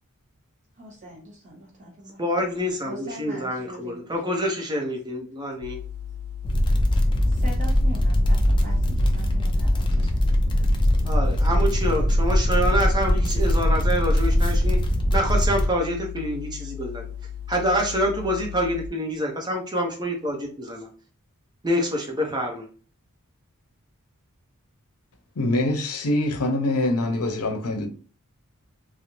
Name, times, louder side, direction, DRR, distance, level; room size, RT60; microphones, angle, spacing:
voice 1, 0.7-2.5 2.8-4.0 7.3-10.1, equal, 35° right, 1.1 m, -41 dB
voice 2, 2.2-5.8 11.0-14.8 15.1-17.0 17.5-20.9 21.6-22.7, equal, 20° right, 0.6 m, -26 dB
sound 1, 5.6-18.9, left 10 dB, 70° right, 0.3 m, -37 dB
sound 2, 6.4-15.7, equal, 20° left, 0.3 m, -21 dB
voice 3, 25.4-27.9, left 1 dB, 90° left, 0.6 m, -24 dB
2.5 x 2.0 x 3.0 m
head